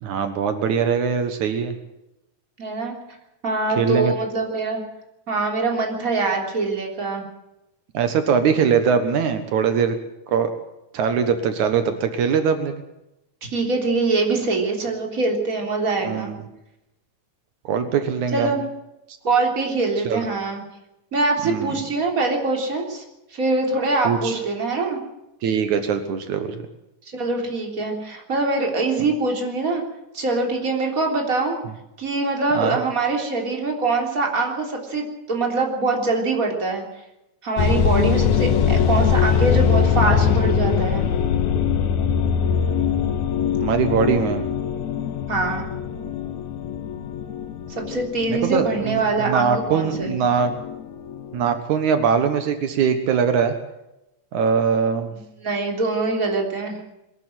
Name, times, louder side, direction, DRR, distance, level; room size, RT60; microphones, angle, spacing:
voice 1, 0.0-1.7 3.8-4.1 7.9-10.0 10.3-10.5 10.9-12.8 16.1-16.3 17.6-18.5 20.1-20.2 21.4-21.7 24.0-24.4 25.4-26.6 32.5-32.8 43.6-44.5 48.3-50.5 51.3-53.5 54.3-55.1, right 6 dB, 80° right, 8 dB, 2.8 m, -21 dB
voice 2, 2.6-3.0 3.4-4.8 5.3-7.2 13.5-16.3 18.3-18.6 19.2-20.6 21.1-23.0 23.3-25.0 27.1-29.8 30.1-31.6 32.0-36.8 37.4-41.0 45.3-45.7 47.7-50.2 55.4-56.8, right 3 dB, 25° right, 1 dB, 3.7 m, -23 dB
sound 1, 37.6-51.6, left 7 dB, 75° left, 2.7 m, -22 dB
22.0 x 13.0 x 9.1 m, 0.90 s
omnidirectional pair, 3.4 m